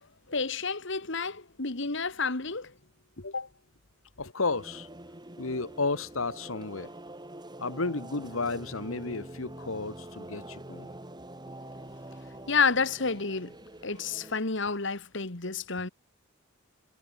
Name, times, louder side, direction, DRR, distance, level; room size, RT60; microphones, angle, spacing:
voice 1, 0.3-2.7 3.2-3.5 12.5-13.5 13.8-15.9, left 4 dB, 60° left, 2.1 m, -30 dB
voice 2, 4.2-4.9 5.4-6.9 7.6-10.9, left 3 dB, 85° left, 1.7 m, -32 dB
sound 1, 4.5-14.4, right 1 dB, 20° right, 4.2 m, -45 dB
head